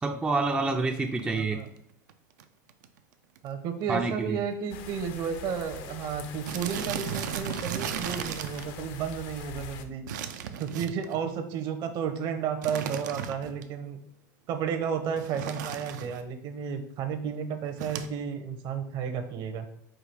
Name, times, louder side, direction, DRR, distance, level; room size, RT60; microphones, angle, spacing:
voice 1, 0.0-1.6 3.9-4.4, right 3 dB, 10° right, 4 dB, 0.3 m, -28 dB
sound 1, 1.1-1.4 2.1-2.2 2.4-2.5 2.7-3.0 3.4-3.5 3.8-3.9 4.7-4.8 5.0-5.2 5.5-5.6 6.5-8.7 10.1-11.2 12.6-13.6 15.2-16.2 17.8-18.1, right 8 dB, 80° right, 0.4 m, -35 dB
voice 2, 1.3-1.7 3.4-10.0 10.6-14.0 14.5-19.7, right 7 dB, 50° right, 7 dB, 0.8 m, -32 dB
sound 2, 4.7-9.9, left 8 dB, 55° left, 0.5 m, -43 dB
5.0 x 2.3 x 4.5 m, 0.74 s
hypercardioid pair, 105°, 10 cm